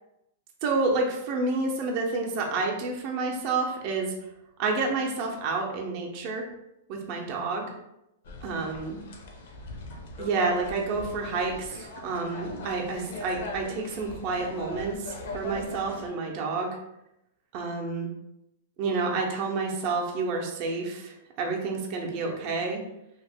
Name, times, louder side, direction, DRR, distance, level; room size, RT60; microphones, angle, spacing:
voice 1, 0.6-4.1 4.6-6.5 6.9-7.7 8.4-9.0 10.2-16.7 17.5-18.1 18.8-22.8, right 3 dB, 40° right, 0 dB, 0.6 m, -29 dB
sound 1, 8.2-16.1, left 2 dB, 65° left, 0.6 m, -40 dB
2.9 x 2.0 x 3.4 m, 0.86 s
hypercardioid pair, 150°, 0 cm